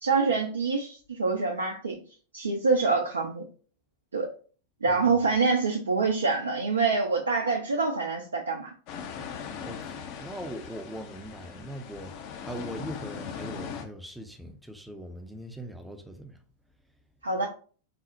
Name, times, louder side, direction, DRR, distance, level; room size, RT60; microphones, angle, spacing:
voice 1, 0.0-2.0 2.3-3.4 4.1-4.3 4.8-8.7 17.2-17.5, right 4 dB, 75° right, 0.4 m, -26 dB
voice 2, 4.9-5.2 9.6-12.1 12.4-16.4, right 1 dB, 5° right, 0.5 m, -41 dB
sound 1, 8.9-13.8, left 6 dB, 45° left, 0.5 m, -39 dB
4.0 x 2.0 x 2.6 m
figure-of-eight pair, 90°, 0 cm